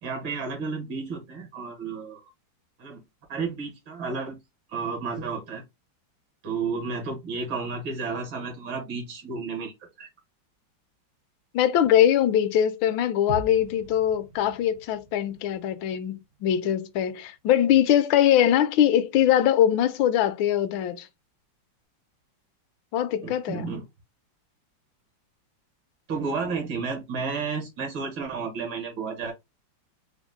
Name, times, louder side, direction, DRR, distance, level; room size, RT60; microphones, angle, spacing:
voice 1, 0.0-2.2 2.8-3.0 3.3-4.4 4.7-5.6 6.4-10.1 23.2-23.8 26.1-29.3, right 4 dB, 85° right, 2.2 m, -32 dB
voice 2, 11.5-21.1 22.9-23.7, left 10 dB, 80° left, 1.3 m, -22 dB
sound 1, 13.3-17.2 17.5-17.6, right 4 dB, 65° right, 0.8 m, -42 dB
5.1 x 2.1 x 3.5 m
omnidirectional pair, 2.1 m